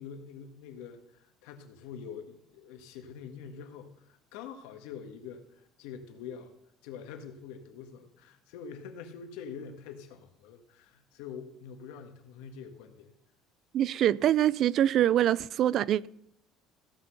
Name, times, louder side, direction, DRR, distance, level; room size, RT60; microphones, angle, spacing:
voice 1, 0.0-6.5 6.8-13.1, left 6 dB, 85° left, 1.7 m, -45 dB
voice 2, 13.7-16.1, right 11 dB, 45° right, 0.3 m, -24 dB
16.0 x 5.9 x 6.5 m
cardioid pair, 160°, 0 cm